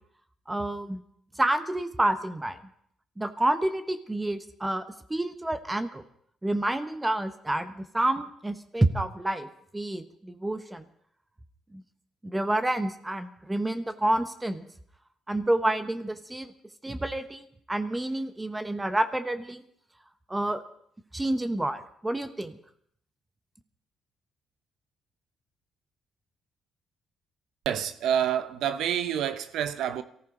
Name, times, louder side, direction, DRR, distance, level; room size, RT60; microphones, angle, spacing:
voice 1, 0.5-1.0 1.4-2.6 3.2-4.8 5.1-6.0 6.4-9.5 9.7-10.8 11.7-11.8 12.2-14.6 15.3-16.5 16.8-19.6 20.3-20.6 21.1-22.6, right 1 dB, 15° right, 1.2 m, -28 dB
voice 2, 27.6-30.0, right 9 dB, 80° right, 0.9 m, -28 dB
23.0 x 14.5 x 3.9 m
cardioid pair, 90°, 0 cm